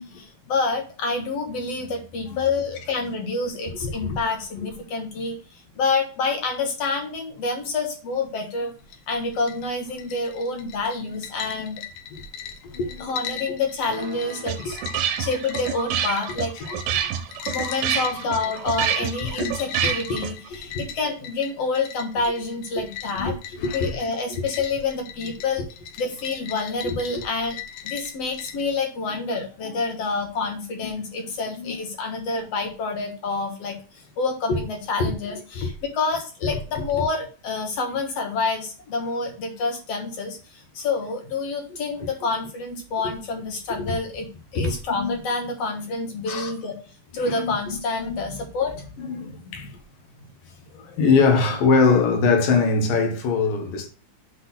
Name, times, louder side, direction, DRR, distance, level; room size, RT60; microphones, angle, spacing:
voice 1, 0.0-8.7 9.1-11.8 13.0-14.8 15.2-16.5 17.5-23.4 23.7-25.7 26.0-27.6 27.8-33.8 34.2-44.3 44.5-46.7 47.1-49.7, left 3 dB, 55° left, 2.1 m, -28 dB
voice 2, 3.8-4.2 9.9-10.1 10.5-10.6 11.6-11.7 12.1-12.2 12.7-13.1 16.6-16.7 17.0-17.1 17.9-18.0 19.4-19.5 20.1-20.2 20.6-20.8 22.8-22.9 23.2-24.0 24.3-24.4 26.8-27.0 29.1-29.2 29.6-29.7 31.6-31.7 34.5-34.6 35.0-35.1 35.6-35.7 36.4-36.5 43.0-43.1 43.8-43.9 44.6-45.1 46.3-46.5 47.1-48.2 49.0-49.8 50.7-53.9, left 4 dB, 70° left, 3.1 m, -23 dB
sound 1, 8.8-28.7, left 9 dB, 85° left, 2.8 m, -39 dB
sound 2, 13.9-20.5, right 9 dB, 75° right, 2.1 m, -28 dB
8.2 x 3.9 x 5.7 m
omnidirectional pair, 4.1 m